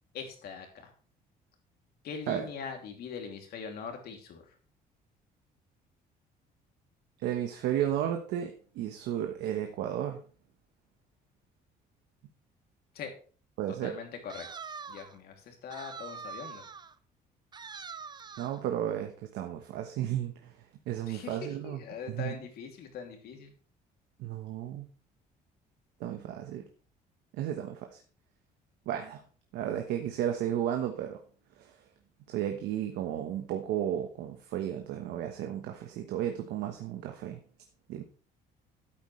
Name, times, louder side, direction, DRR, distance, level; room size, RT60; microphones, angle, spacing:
voice 1, 0.1-0.9 2.0-4.5 12.9-13.1 13.8-14.5 14.9-16.6 21.1-23.5, left 6 dB, 70° left, 4 dB, 2.8 m, -42 dB
voice 2, 7.2-10.2 13.6-14.0 18.4-20.5 20.9-21.8 22.1-22.3 24.2-24.9 26.0-26.6 27.4-28.0 28.9-29.2 29.5-31.2 31.6-31.7 32.3-37.4 37.9-38.0, right 10 dB, 85° right, 4 dB, 1.2 m, -33 dB
sound 1, 14.3-15.2 15.7-16.9 17.5-18.6, right 5 dB, 25° right, 0.6 m, -44 dB
12.5 x 8.7 x 3.2 m, 0.40 s
cardioid pair, 110°, 17 cm